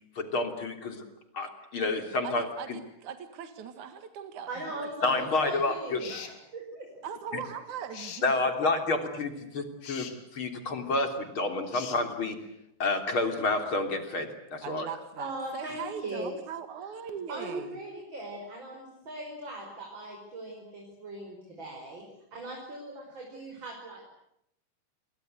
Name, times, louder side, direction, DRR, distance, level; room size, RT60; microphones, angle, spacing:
voice 1, 0.2-1.0 1.3-2.8 5.0-6.0 8.2-10.1 10.3-12.4 12.8-14.9, left 3 dB, 35° left, 6 dB, 3.7 m, -29 dB
voice 2, 2.2-5.5 7.0-8.3 14.6-17.8, right 7 dB, 55° right, 9 dB, 2.8 m, -40 dB
voice 3, 4.5-6.9 15.2-16.3 17.3-24.1, right 1 dB, 30° right, 0 dB, 6.1 m, -39 dB
sound 1, 6.0-6.4 7.9-8.3 9.8-10.2 11.7-12.0, left 8 dB, 70° left, 4.1 m, -42 dB
28.5 x 23.5 x 8.0 m, 0.79 s
omnidirectional pair, 4.4 m